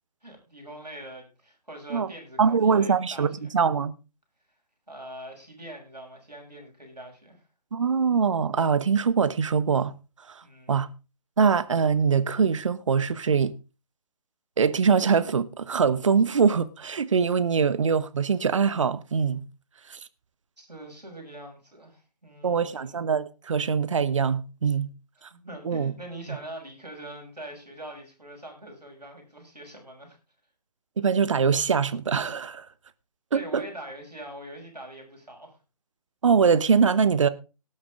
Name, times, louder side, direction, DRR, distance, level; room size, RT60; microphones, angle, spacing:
voice 1, 0.2-3.5 4.9-7.4 10.4-10.8 20.6-23.0 25.3-30.2 33.3-35.5, right 1 dB, 85° right, 6.7 m, -43 dB
voice 2, 2.4-3.9 7.7-9.9 10.3-10.4 10.7-10.9 11.4-13.5 14.6-19.4 19.9-20.0 22.4-24.9 25.6-25.9 31.0-32.6 33.3-33.6 36.2-37.3, right 6 dB, 50° right, 1.0 m, -23 dB
18.5 x 8.6 x 3.7 m
figure-of-eight pair, 140°, 20 cm